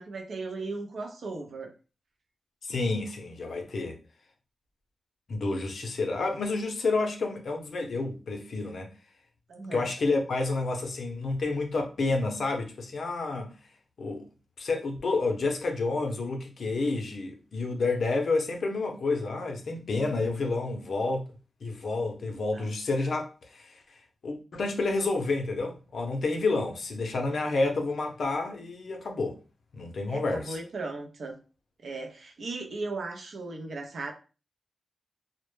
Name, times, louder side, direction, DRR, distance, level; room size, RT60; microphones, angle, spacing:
voice 1, 0.0-1.7 9.5-9.9 22.5-22.7 30.1-31.3 31.8-34.1, right 3 dB, 70° right, 0.5 m, -37 dB
voice 2, 2.6-4.0 5.3-8.9 9.7-13.5 14.0-14.3 14.6-21.3 21.6-23.8 24.2-29.4 29.7-30.6, left 3 dB, 65° left, 0.5 m, -29 dB
2.0 x 2.0 x 3.1 m
wide cardioid pair, 110°, 0 cm